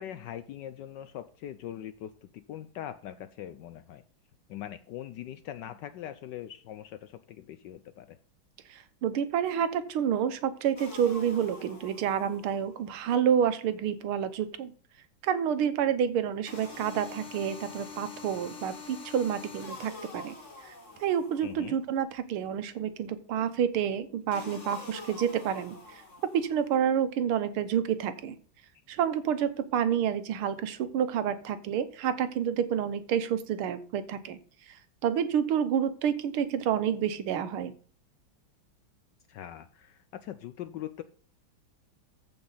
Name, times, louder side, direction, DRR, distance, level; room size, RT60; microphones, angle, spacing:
voice 1, 0.0-4.0 4.5-8.2 21.4-21.8 39.3-41.0, left 11 dB, 75° left, 12 dB, 1.0 m, -42 dB
voice 2, 8.7-14.7 15.2-20.3 20.6-20.7 21.0-26.0 26.3-28.4 28.9-34.4 34.7-34.8 35.0-37.7, right 8 dB, 85° right, 11 dB, 1.8 m, -29 dB
sound 1, 10.8-12.7 16.5-21.7 24.3-26.7, left 4 dB, 35° left, 2.2 m, -45 dB
14.5 x 5.2 x 4.0 m, 0.42 s
omnidirectional pair, 2.3 m